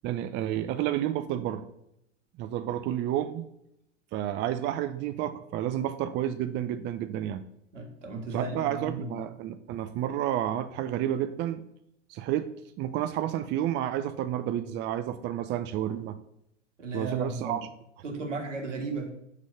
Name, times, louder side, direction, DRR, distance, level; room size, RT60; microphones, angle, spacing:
voice 1, 0.0-1.7 2.4-3.5 4.1-7.4 8.3-11.6 12.1-12.5 12.8-16.2 16.9-17.6, right 11 dB, 30° right, 11 dB, 0.5 m, -30 dB
voice 2, 7.7-9.3 16.8-17.7 18.0-19.1, right 3 dB, 80° right, 4 dB, 1.7 m, -35 dB
6.6 x 4.8 x 6.7 m, 0.80 s
hypercardioid pair, 90°, 36 cm